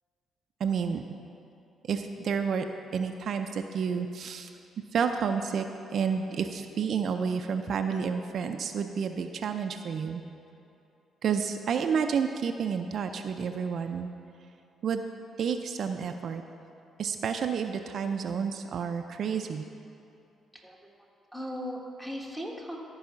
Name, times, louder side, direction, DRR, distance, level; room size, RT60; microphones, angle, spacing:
voice 1, 0.6-1.0 1.9-2.7 2.9-4.5 4.9-10.2 11.2-14.1 14.8-15.0 15.4-16.4 17.0-19.6, right 6 dB, 60° right, 6 dB, 0.4 m, -30 dB
voice 2, 20.5-20.9 21.3-22.8, equal, 5° left, -1 dB, 1.4 m, -38 dB
13.0 x 4.8 x 5.7 m, 2.7 s
cardioid pair, 90°, 0 cm